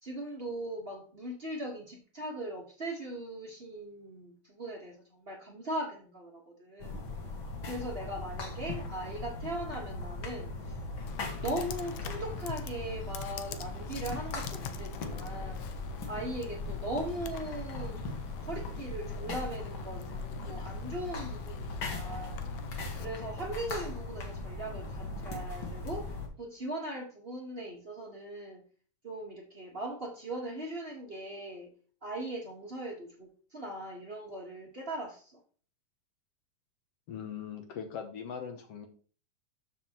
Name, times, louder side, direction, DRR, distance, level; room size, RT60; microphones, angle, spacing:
voice 1, 0.0-7.0 7.6-10.8 11.4-15.6 16.1-18.0 18.4-22.3 22.9-28.6 29.0-31.7 32.0-35.3, right 1 dB, 75° right, -1 dB, 0.5 m, -39 dB
sound 1, 6.8-26.3, left 2 dB, 50° left, 1.9 m, -39 dB
Computer keyboard, 11.1-23.1, left 9 dB, 90° left, 2.2 m, -45 dB
voice 2, 37.1-38.9, left 7 dB, 70° left, 6 dB, 1.6 m, -40 dB
12.5 x 5.5 x 2.9 m, 0.41 s
omnidirectional pair, 3.5 m